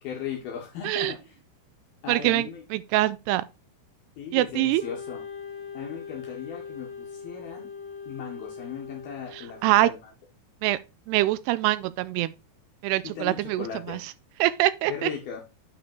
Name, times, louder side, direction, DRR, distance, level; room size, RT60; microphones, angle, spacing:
voice 1, 0.0-1.4 2.0-2.6 4.2-5.2 5.7-7.7 8.1-10.1 13.0-14.0 14.9-15.4, left 8 dB, 70° left, 3.0 m, -37 dB
voice 2, 2.1-3.4 4.3-4.8 9.6-9.9 10.6-10.8 11.1-12.3 12.8-14.0 14.4-15.1, right 16 dB, 80° right, 2.5 m, -24 dB
Wind instrument woodwind instrument, 4.8-9.9, left 6 dB, 20° left, 2.1 m, -41 dB
8.9 x 5.2 x 4.4 m
omnidirectional pair, 4.9 m